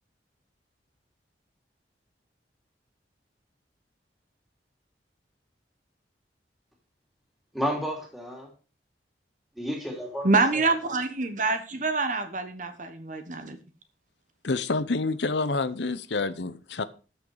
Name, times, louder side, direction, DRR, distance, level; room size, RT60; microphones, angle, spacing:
voice 1, 7.5-8.5 9.5-11.0, equal, ahead, 2.9 m, -32 dB
voice 2, 10.2-13.6, right 3 dB, 45° right, 1.2 m, -26 dB
voice 3, 14.4-16.8, left 3 dB, 80° left, 0.8 m, -28 dB
13.5 x 6.5 x 4.8 m
head